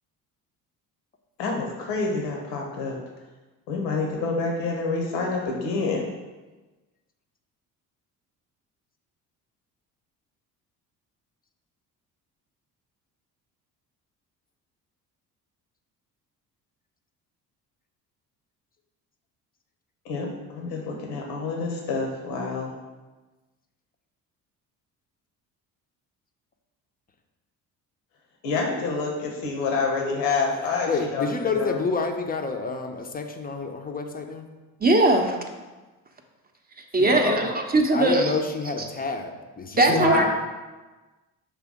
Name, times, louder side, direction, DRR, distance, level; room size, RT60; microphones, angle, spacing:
voice 1, 1.4-3.0 3.7-6.0 20.0-22.7 28.4-31.2 31.5-31.8 37.0-37.4 39.9-40.2, left 4 dB, 75° left, 0 dB, 1.0 m, -27 dB
voice 2, 30.9-34.5 37.9-40.2, left 4 dB, 20° left, 4 dB, 0.6 m, -29 dB
voice 3, 34.8-35.4 36.8-38.4 39.8-40.2, right 2 dB, 20° right, 3 dB, 0.7 m, -20 dB
5.8 x 3.4 x 4.8 m, 1.2 s
figure-of-eight pair, 50°, 49 cm